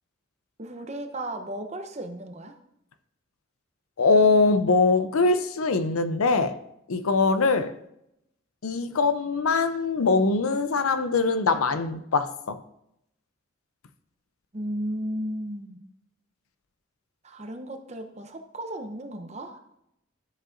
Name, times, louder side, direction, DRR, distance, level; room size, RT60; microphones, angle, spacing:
voice 1, 0.6-2.6 14.5-15.8 17.2-19.6, right 1 dB, 30° right, 0.7 m, -34 dB
voice 2, 4.0-6.6 6.9-7.7 8.6-12.6, left 3 dB, 90° left, 0.6 m, -22 dB
12.0 x 7.6 x 2.6 m
head